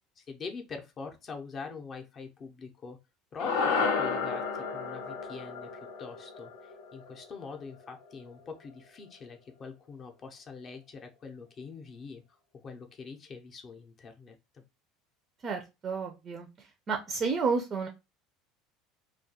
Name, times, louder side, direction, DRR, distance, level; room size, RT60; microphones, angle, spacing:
voice 1, 0.2-3.0 3.3-12.2 12.5-14.6, left 5 dB, 35° left, 4 dB, 0.5 m, -44 dB
sound 1, 3.4-7.9, left 5 dB, 90° left, 0.6 m, -32 dB
voice 2, 15.4-17.9, right 5 dB, 30° right, 4 dB, 0.4 m, -31 dB
2.2 x 2.2 x 2.7 m, 0.25 s
supercardioid pair, 130°, 0 cm